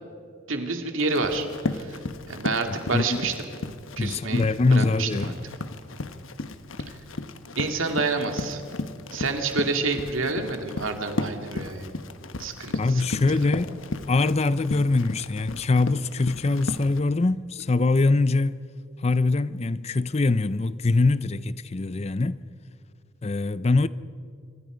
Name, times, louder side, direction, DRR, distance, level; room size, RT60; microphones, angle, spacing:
voice 1, 0.5-2.0 2.3-3.4 4.0-4.4 4.7-5.3 6.9-7.0 7.6-8.6 9.1-11.9 12.4-13.4, right 3 dB, 75° right, 2.4 m, -28 dB
Run, 1.0-17.0, left 2 dB, 75° left, 1.2 m, -35 dB
voice 2, 2.7-3.2 4.0-5.3 12.8-13.8 14.1-18.6 19.0-22.4 23.2-23.9, left 3 dB, 30° left, 0.5 m, -23 dB
26.0 x 25.5 x 5.1 m
head